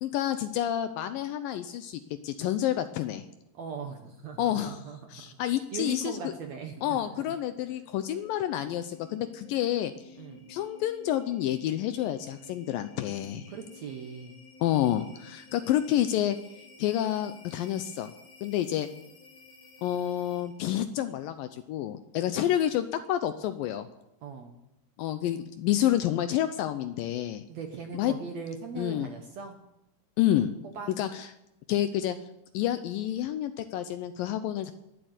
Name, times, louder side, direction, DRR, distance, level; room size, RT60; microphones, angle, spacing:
voice 1, 0.0-3.2 4.4-4.8 5.1-6.2 6.8-9.9 10.5-13.5 14.6-16.4 16.8-18.1 18.4-18.9 19.8-23.9 25.0-27.4 27.9-28.1 28.8-29.1 30.2-30.5 31.0-31.3 31.7-32.2 32.5-34.7, left 12 dB, 80° left, 10 dB, 2.1 m, -29 dB
voice 2, 3.5-7.0 7.3-7.4 10.2-10.5 13.5-14.4 24.2-24.6 27.5-29.6 30.6-30.9, right 5 dB, 65° right, 4 dB, 1.8 m, -40 dB
sound 1, 7.1-20.7, left 3 dB, 55° left, 3.3 m, -53 dB
20.5 x 7.8 x 8.0 m, 0.87 s
omnidirectional pair, 4.5 m